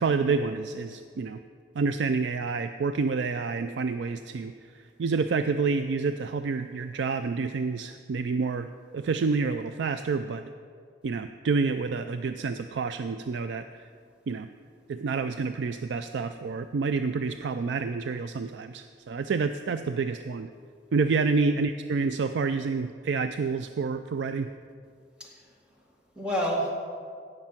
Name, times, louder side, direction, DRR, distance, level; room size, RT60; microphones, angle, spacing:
voice 1, 0.0-1.4 1.7-10.4 11.0-13.9 14.3-14.5 14.9-20.5 20.9-24.5, right 4 dB, 75° right, 9 dB, 0.4 m, -28 dB
voice 2, 25.2-26.7, equal, 5° right, -2 dB, 2.0 m, -32 dB
16.5 x 6.6 x 5.9 m, 2.2 s
head